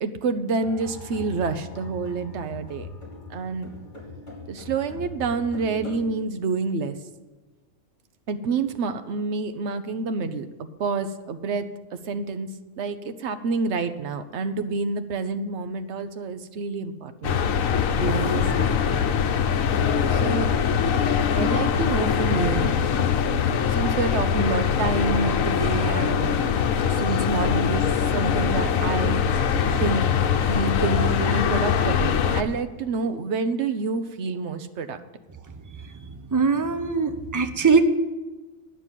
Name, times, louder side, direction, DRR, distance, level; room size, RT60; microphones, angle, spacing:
voice 1, 0.0-2.9 3.3-3.7 4.5-7.0 8.3-10.5 10.8-11.6 11.9-12.5 12.8-17.4 18.0-18.8 20.1-20.5 21.4-22.9 23.7-26.3 26.6-29.2 29.8-30.0 30.5-35.0, right 4 dB, 60° right, 9 dB, 1.1 m, -28 dB
sound 1, 0.6-6.1, left 3 dB, 35° left, 2.6 m, -40 dB
sound 2, 17.2-32.4, left 7 dB, 75° left, 1.1 m, -22 dB
voice 2, 36.3-37.8, right 5 dB, 20° right, 8 dB, 0.6 m, -22 dB
9.8 x 6.8 x 9.0 m, 1.2 s
omnidirectional pair, 1.4 m